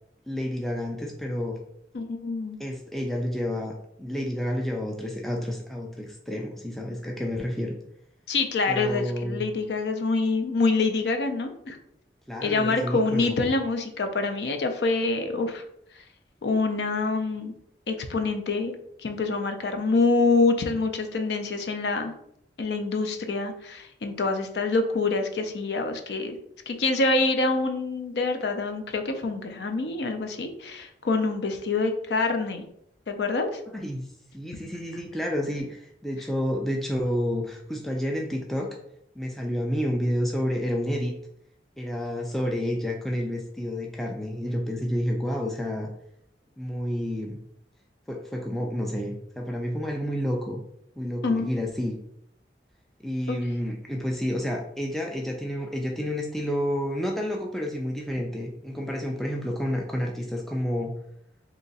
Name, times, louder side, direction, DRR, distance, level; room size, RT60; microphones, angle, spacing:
voice 1, 0.3-1.6 2.6-3.7 4.0-7.8 8.7-9.4 12.3-13.4 33.7-34.1 34.3-38.8 39.2-41.1 41.8-45.9 46.6-47.4 48.1-50.6 51.0-52.0 53.0-60.9, equal, ahead, 0 dB, 0.3 m, -30 dB
voice 2, 1.9-2.6 8.3-11.8 12.4-15.6 16.4-17.5 17.9-18.7 19.0-22.1 22.6-26.4 26.7-32.6 33.1-33.6 51.2-51.5 53.3-53.4, left 3 dB, 70° left, 6 dB, 0.5 m, -26 dB
2.8 x 2.4 x 3.9 m, 0.72 s
head